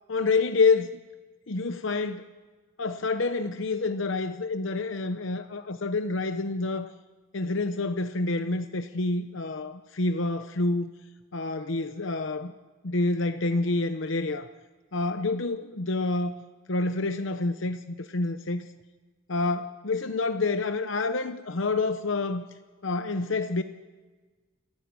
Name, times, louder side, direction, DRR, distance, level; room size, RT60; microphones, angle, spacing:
voice 1, 0.1-0.9 1.5-2.3 2.8-6.9 7.3-10.9 11.3-12.5 12.8-14.5 14.9-16.4 16.7-18.7 19.3-22.5 22.8-23.6, left 3 dB, 65° left, 0.9 m, -28 dB
28.5 x 11.0 x 9.6 m
head